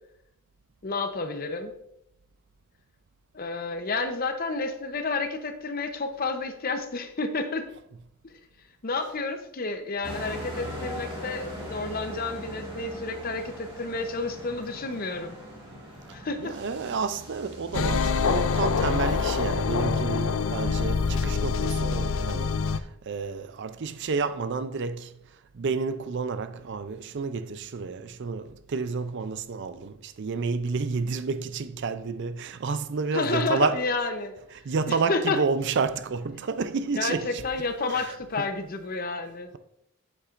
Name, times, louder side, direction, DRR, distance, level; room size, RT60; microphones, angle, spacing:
voice 1, 0.8-1.7 3.3-7.7 8.2-8.3 8.8-15.4 16.1-16.6 33.1-34.3 34.9-35.4 37.0-39.6, left 3 dB, 40° left, 0.7 m, -30 dB
sound 1, 10.0-22.9, equal, 25° right, 2.1 m, -42 dB
voice 2, 16.4-25.2 25.5-33.8 34.5-37.4 37.9-38.1, right 4 dB, 50° right, 0.4 m, -30 dB
sound 2, 17.7-22.8, left 5 dB, 60° left, 0.4 m, -25 dB
8.5 x 8.2 x 2.5 m
head